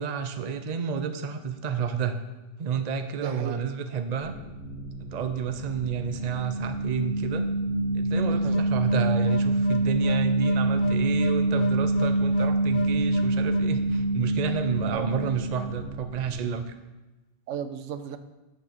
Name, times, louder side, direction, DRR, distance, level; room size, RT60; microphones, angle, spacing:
voice 1, 0.0-2.2 2.6-4.3 5.0-7.4 7.9-16.8, right 7 dB, 45° right, 8 dB, 0.6 m, -30 dB
voice 2, 3.1-3.6 8.3-8.6 14.9-15.4 17.5-18.2, right 8 dB, 90° right, 11 dB, 1.0 m, -35 dB
sound 1, 4.2-16.3, right 1 dB, 40° left, 2.7 m, -41 dB
sound 2, 5.8-16.0, right 1 dB, 55° left, 0.8 m, -25 dB
6.1 x 5.7 x 6.6 m, 1.1 s
omnidirectional pair, 1.2 m